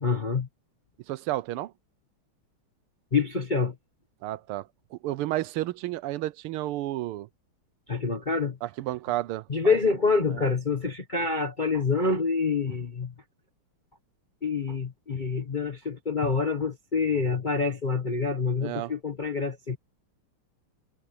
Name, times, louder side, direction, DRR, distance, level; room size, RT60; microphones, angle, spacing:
voice 1, 0.0-0.5 3.1-3.7 7.9-8.6 9.5-13.1 14.4-19.8, left 4 dB, 30° left, 1.0 m, -26 dB
voice 2, 1.1-1.7 4.2-7.3 8.6-9.8 10.3-10.5 18.6-18.9, right 15 dB, 90° right, 1.6 m, -32 dB
omnidirectional pair, 2.3 m